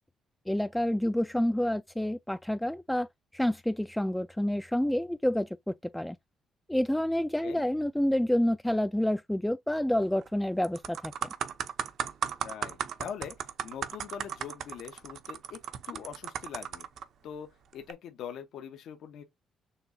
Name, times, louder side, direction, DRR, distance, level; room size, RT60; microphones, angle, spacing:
voice 1, 0.5-3.1 3.3-6.2 6.7-11.3, left 1 dB, 5° left, 0.3 m, -28 dB
sound 1, 10.0-10.3 10.6-17.0 17.7-17.9, right 8 dB, 70° right, 0.7 m, -36 dB
voice 2, 12.4-15.6 15.9-16.9 17.2-19.2, left 8 dB, 75° left, 1.0 m, -43 dB
6.9 x 2.7 x 2.7 m
cardioid pair, 90°, 0 cm